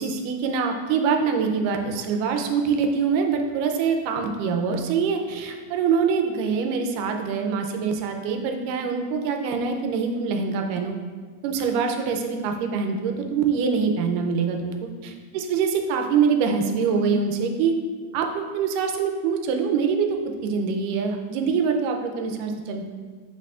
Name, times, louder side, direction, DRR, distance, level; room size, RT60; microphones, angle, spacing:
voice 1, 0.0-11.0 11.4-17.8 18.1-20.1 20.4-22.9, right 5 dB, 85° right, 4 dB, 2.2 m, -24 dB
8.3 x 6.1 x 2.4 m, 1.5 s
omnidirectional pair, 3.7 m